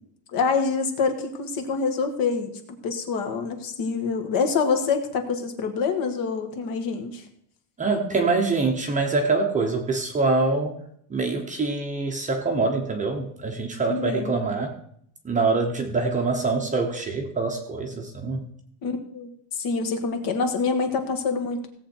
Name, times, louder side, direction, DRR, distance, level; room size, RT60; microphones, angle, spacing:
voice 1, 0.3-7.3 13.9-14.3 18.8-21.6, left 5 dB, 50° left, 5 dB, 1.8 m, -26 dB
voice 2, 7.8-10.8 11.1-14.8 15.2-18.5, right 3 dB, 15° right, 3 dB, 0.9 m, -25 dB
17.0 x 7.6 x 4.4 m, 0.69 s
cardioid pair, 175°, 45 cm